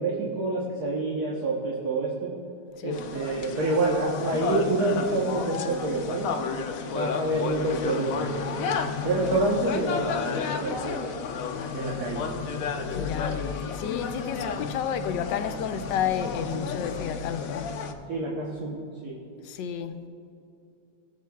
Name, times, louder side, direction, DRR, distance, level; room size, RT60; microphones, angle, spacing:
voice 1, 0.0-2.3 2.8-6.3 6.9-8.6 9.0-11.2 11.7-12.5 18.1-18.8 19.0-19.2, right 2 dB, 60° right, -3 dB, 1.5 m, -27 dB
sound 1, 2.9-17.9, left 6 dB, 65° left, 0.9 m, -32 dB
voice 2, 12.9-13.4 13.7-17.7 19.4-20.1, left 8 dB, 80° left, 9 dB, 1.3 m, -31 dB
19.5 x 7.5 x 2.3 m, 2.6 s
omnidirectional pair, 2.0 m